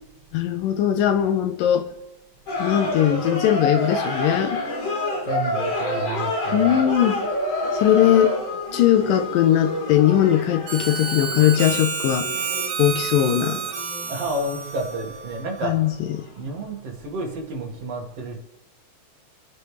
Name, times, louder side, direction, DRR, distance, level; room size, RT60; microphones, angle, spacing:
voice 1, 0.3-1.9 2.6-4.6 6.5-7.2 7.8-8.3 8.7-12.3 12.8-13.6 15.6-15.9 16.2-16.3, left 11 dB, 80° left, 8 dB, 2.6 m, -19 dB
sound 1, 2.5-16.3, left 1 dB, 45° left, 4.8 m, -28 dB
voice 2, 5.2-6.9 14.1-16.0 16.3-18.4, right 2 dB, 50° right, 0 dB, 3.1 m, -30 dB
Harmonica, 10.7-15.8, right 6 dB, 85° right, 1.1 m, -30 dB
29.0 x 10.5 x 3.4 m, 0.97 s
omnidirectional pair, 4.0 m